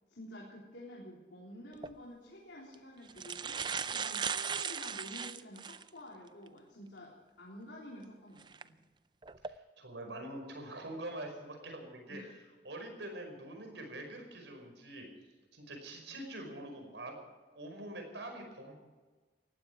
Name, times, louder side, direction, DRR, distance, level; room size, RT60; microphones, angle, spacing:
voice 1, 0.1-3.6 3.9-8.8 12.1-12.3, equal, 80° left, -4 dB, 3.8 m, -50 dB
sound 1, 1.7-1.9 2.7-2.8 3.1-5.9 6.5-6.6 8.4-8.6 9.2-9.5, right 6 dB, 25° right, 0.5 m, -37 dB
voice 2, 9.4-12.2 12.6-15.1 15.5-17.2 17.6-18.8, right 1 dB, 80° right, 4 dB, 5.3 m, -44 dB
19.0 x 15.0 x 4.7 m, 1.3 s
head